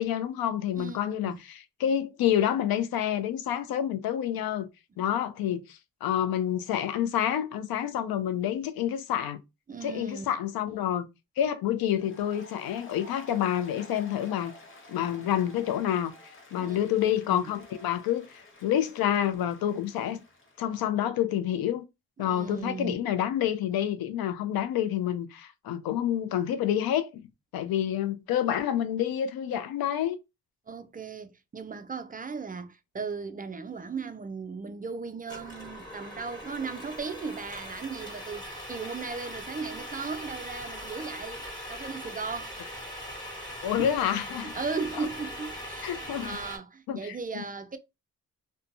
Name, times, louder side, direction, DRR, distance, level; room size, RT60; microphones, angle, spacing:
voice 1, 0.0-4.7 5.0-9.4 9.8-11.0 11.4-14.5 14.9-16.1 16.5-20.2 20.6-21.8 22.2-27.3 27.5-30.2 43.6-44.5 45.0-45.1 45.8-46.4 46.9-47.4, left 10 dB, 90° left, 0.5 m, -28 dB
voice 2, 0.8-1.4 9.7-10.3 16.6-16.8 17.3-17.5 22.2-22.9 30.7-41.4 41.7-42.6 43.6-43.9 44.3-47.8, right 5 dB, 25° right, 0.3 m, -37 dB
Applause, 11.9-20.6, left 1 dB, 35° left, 1.1 m, -51 dB
sound 1, 35.3-46.6, equal, 10° left, 1.3 m, -40 dB
2.6 x 2.2 x 2.6 m
cardioid pair, 75°, 35 cm